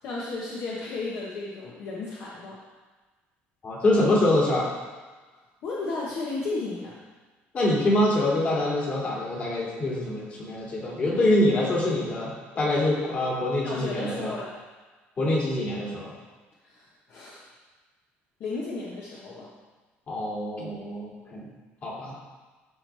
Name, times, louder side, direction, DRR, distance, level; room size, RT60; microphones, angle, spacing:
voice 1, 0.0-2.6 5.6-7.0 13.6-14.5 16.6-17.5 18.4-19.5, left 3 dB, 55° left, -5 dB, 1.2 m, -34 dB
voice 2, 3.6-4.7 7.5-14.3 15.2-16.1 20.1-21.5 21.8-22.1, left 1 dB, 35° left, -4 dB, 2.3 m, -25 dB
12.0 x 4.6 x 3.4 m, 1.3 s
cardioid pair, 140°, 4 cm